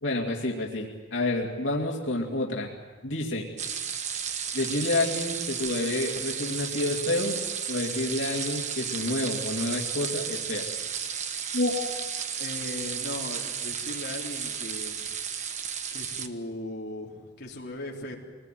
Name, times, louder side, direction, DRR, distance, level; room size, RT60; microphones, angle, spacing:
voice 1, 0.0-2.7 3.0-3.5 4.5-7.4 7.7-10.6 11.5-11.9, left 2 dB, 85° left, -1 dB, 2.6 m, -29 dB
sound 1, 3.6-16.3, right 7 dB, 40° right, 1.2 m, -33 dB
voice 2, 12.4-15.0 15.9-18.1, left 1 dB, 60° left, -2 dB, 3.7 m, -38 dB
24.5 x 20.0 x 9.2 m, 1.4 s
head